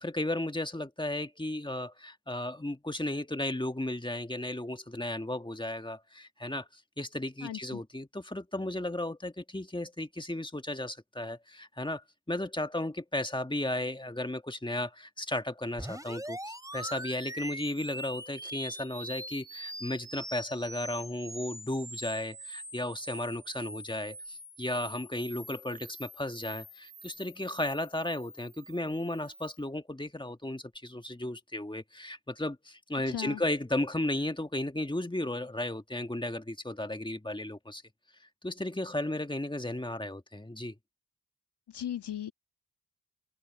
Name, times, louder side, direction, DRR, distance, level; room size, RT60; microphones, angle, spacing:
voice 1, 0.0-12.0 12.3-37.8 38.4-40.7, left 1 dB, 10° left, 1.9 m, -34 dB
voice 2, 7.4-7.8 33.1-33.4 41.7-42.3, left 10 dB, 80° left, 1.8 m, -37 dB
sound 1, 15.8-29.6, right 1 dB, 10° right, 5.2 m, -44 dB
supercardioid pair, 40°, 40 cm